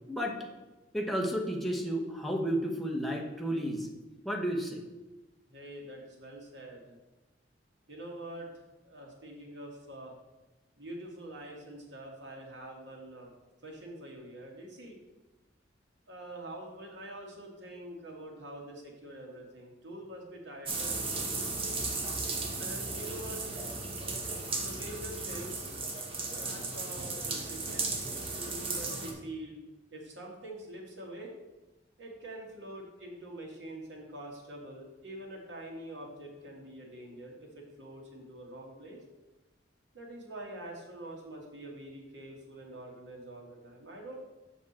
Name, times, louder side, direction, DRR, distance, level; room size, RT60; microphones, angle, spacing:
voice 1, 0.9-3.9 4.2-4.8, equal, ahead, 0 dB, 1.0 m, -32 dB
voice 2, 5.5-7.0 7.9-10.1 10.8-13.3 13.6-15.0 16.1-21.3 22.6-23.4 24.6-25.7 26.3-27.9 28.5-29.6 29.9-31.3 32.0-39.0 39.9-44.2, right 1 dB, 90° right, -1 dB, 2.0 m, -45 dB
sound 1, 20.7-29.1, right 3 dB, 30° right, 1.2 m, -35 dB
7.3 x 6.0 x 4.2 m, 1.1 s
head